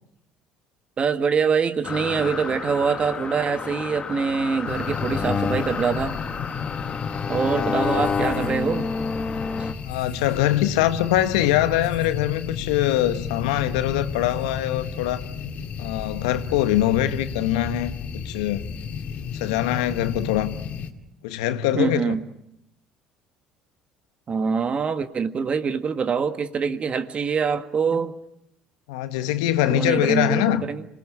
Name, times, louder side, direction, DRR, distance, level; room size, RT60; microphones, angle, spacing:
voice 1, 1.0-6.1 7.3-8.9 9.6-9.7 21.7-22.2 24.3-28.2 29.7-30.9, right 5 dB, 40° right, 1.6 m, -24 dB
sound 1, 1.8-9.7, left 5 dB, 35° left, 1.6 m, -29 dB
sound 2, 4.7-20.9, left 6 dB, 55° left, 2.4 m, -33 dB
voice 2, 9.8-15.2 15.8-18.7 19.3-20.5 21.2-22.2 28.9-30.7, left 13 dB, 85° left, 1.2 m, -23 dB
26.5 x 19.0 x 8.6 m
hypercardioid pair, 70°, 3 cm